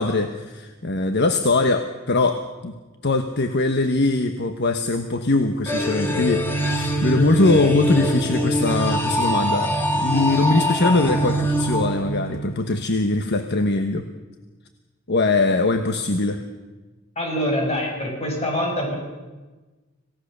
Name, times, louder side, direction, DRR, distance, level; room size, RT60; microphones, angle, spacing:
voice 1, 0.0-2.7 3.0-14.1 15.1-16.4, left 2 dB, 55° left, 7 dB, 1.2 m, -21 dB
sound 1, 5.7-12.7, equal, 10° left, 2.7 m, -23 dB
voice 2, 17.1-19.0, equal, 30° left, 0 dB, 6.7 m, -24 dB
26.5 x 17.0 x 6.8 m, 1.2 s
head